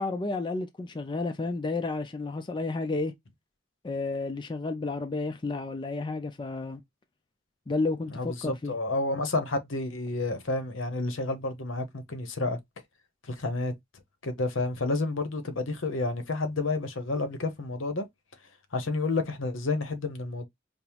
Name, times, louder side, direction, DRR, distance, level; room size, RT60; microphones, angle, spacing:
voice 1, 0.0-3.1 3.8-6.8 7.7-8.7, left 3 dB, 25° left, 0.4 m, -31 dB
voice 2, 8.1-12.6 13.3-13.7 14.2-18.1 18.7-20.5, left 2 dB, 70° left, 0.8 m, -30 dB
5.2 x 2.0 x 2.9 m
head